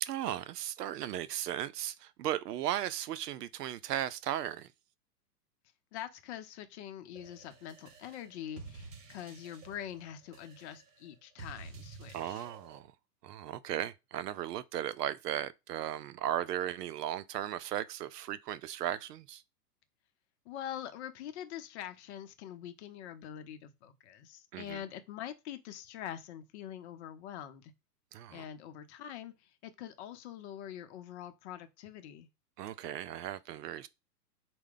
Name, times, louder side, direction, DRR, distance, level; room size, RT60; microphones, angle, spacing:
voice 1, 0.0-4.7 12.1-12.9 13.2-19.4 24.5-24.8 28.1-28.4 32.6-33.9, right 12 dB, 75° right, 0.6 m, -36 dB
voice 2, 5.9-12.4 20.5-27.7 28.3-32.3, left 10 dB, 45° left, 0.7 m, -44 dB
sound 1, 7.2-12.8, right 4 dB, 55° right, 1.2 m, -51 dB
4.5 x 2.2 x 3.7 m
hypercardioid pair, 120°, 48 cm